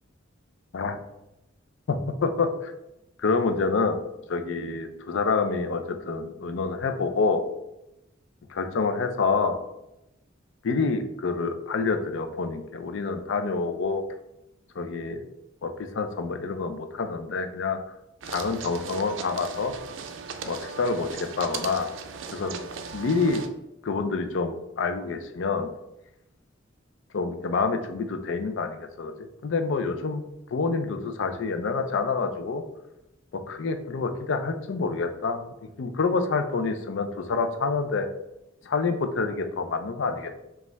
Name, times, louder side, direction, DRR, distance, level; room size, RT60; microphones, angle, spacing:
voice 1, 1.9-2.7 3.2-4.0 4.3-7.4 8.5-9.6 10.6-14.0 14.8-15.2 15.6-17.8 18.3-19.7 20.4-21.9 22.3-22.5 22.9-23.4 23.8-25.7 27.1-30.2 30.5-32.6 33.3-38.1 38.6-40.3, left 4 dB, 65° left, 7 dB, 0.5 m, -27 dB
sound 1, 18.2-23.5, right 5 dB, 70° right, 0.4 m, -38 dB
5.1 x 2.4 x 3.3 m, 0.90 s
head